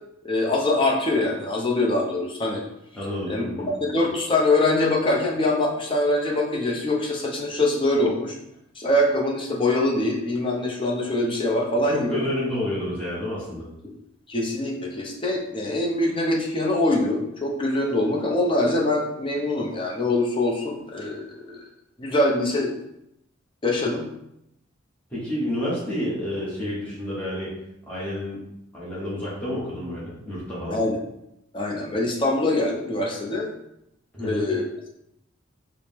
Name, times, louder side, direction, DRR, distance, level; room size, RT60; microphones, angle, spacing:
voice 1, 0.2-2.6 3.3-8.4 8.8-12.2 14.3-21.6 22.0-22.7 23.6-24.1 30.7-31.0 31.5-33.5 34.2-34.9, left 2 dB, 25° left, -1 dB, 0.6 m, -24 dB
voice 2, 2.9-3.7 11.9-13.7 25.1-27.5 27.9-28.4 28.7-30.8 34.1-34.5, left 1 dB, 5° left, -9 dB, 0.9 m, -29 dB
4.3 x 2.0 x 3.4 m, 0.82 s
head